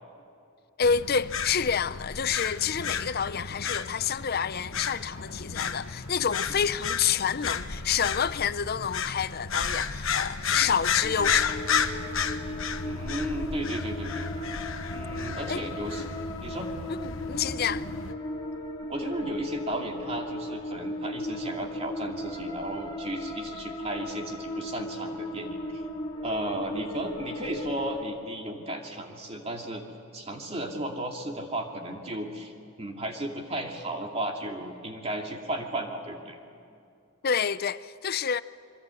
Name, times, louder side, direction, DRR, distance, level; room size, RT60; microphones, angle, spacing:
sound 1, 0.8-18.1, left 6 dB, 65° left, 1.2 m, -33 dB
voice 1, 0.8-11.6 15.5-15.6 16.0-16.1 17.0-17.9 37.2-38.4, left 7 dB, 45° left, 0.6 m, -28 dB
sound 2, 11.0-28.0, left 1 dB, 20° left, 2.5 m, -37 dB
voice 2, 12.8-14.3 14.9-16.0 16.4-16.7 18.9-25.8 26.2-29.8 30.1-32.5 32.8-36.4, right 1 dB, 30° right, 2.5 m, -34 dB
25.5 x 23.5 x 8.4 m
head